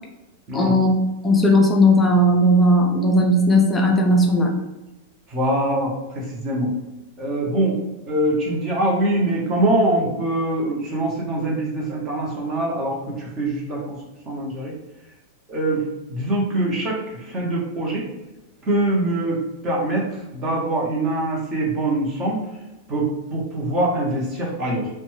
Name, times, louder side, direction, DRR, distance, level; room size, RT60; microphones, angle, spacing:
voice 1, 0.5-0.9 1.2-4.5, left 1 dB, 10° left, 0 dB, 0.4 m, -16 dB
voice 2, 5.3-6.7 7.2-7.8 8.1-13.9 14.3-14.7 15.5-18.1 18.7-20.1 20.3-22.4 22.9-24.9, right 1 dB, 25° right, -2 dB, 0.8 m, -23 dB
2.6 x 2.2 x 3.1 m, 1.0 s
supercardioid pair, 155°, 0 cm